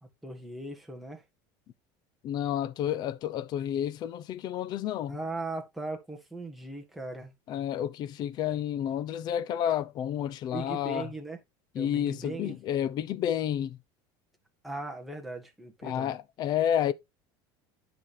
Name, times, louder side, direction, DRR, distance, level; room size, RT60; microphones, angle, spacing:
voice 1, 0.0-1.2 5.1-7.3 10.5-11.4 11.7-12.6 14.6-16.1, right 2 dB, ahead, 1.7 m, -38 dB
voice 2, 2.2-5.2 7.5-11.1 11.8-13.8 15.8-16.9, left 10 dB, 40° left, 0.7 m, -30 dB
9.8 x 5.9 x 3.4 m
cardioid pair, 155°, 11 cm